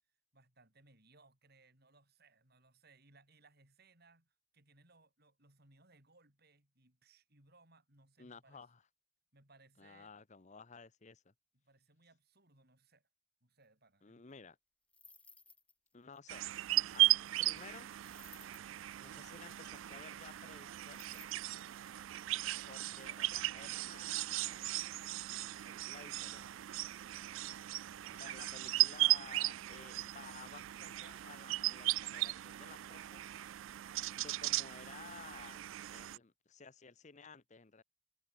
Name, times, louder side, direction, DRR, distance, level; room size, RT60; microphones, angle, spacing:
voice 1, 0.3-8.6 9.3-10.1 11.5-13.1 13.4-14.3, right 3 dB, 50° right, 7.6 m, -67 dB
voice 2, 8.2-8.8 9.8-11.3 14.0-14.6 15.9-16.4 16.9-17.1 17.4-17.9 19.0-21.2 22.7-24.8 25.6-26.5 28.1-33.2 34.2-35.6 35.9-37.8, left 5 dB, 35° left, 0.8 m, -55 dB
sound 1, 14.9-15.9 16.1-16.2 18.0-19.0 20.9-22.2, left 3 dB, 5° left, 1.7 m, -60 dB
sound 2, 16.3-36.2, right 17 dB, 65° right, 0.3 m, -37 dB
head